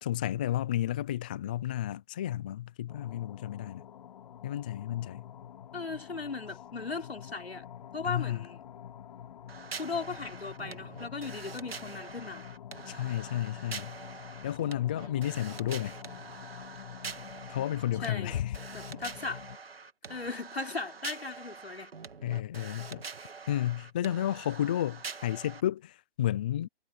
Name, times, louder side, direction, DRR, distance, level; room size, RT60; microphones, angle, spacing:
voice 1, 0.0-3.9 4.4-5.3 8.0-8.5 12.9-14.0 14.4-16.0 17.5-18.6 18.9-19.0 22.2-23.0 23.5-26.7, left 12 dB, 10° left, 0.4 m, -32 dB
sound 1, 2.9-19.6, left 9 dB, 45° left, 4.8 m, -47 dB
voice 2, 5.7-7.7 7.9-8.6 9.8-12.5 15.0-15.3 18.0-18.3 18.7-19.4 20.1-21.9, left 4 dB, 80° left, 5.4 m, -37 dB
sound 2, 9.5-25.6, right 5 dB, 70° right, 2.6 m, -45 dB
figure-of-eight pair, 140°, 31 cm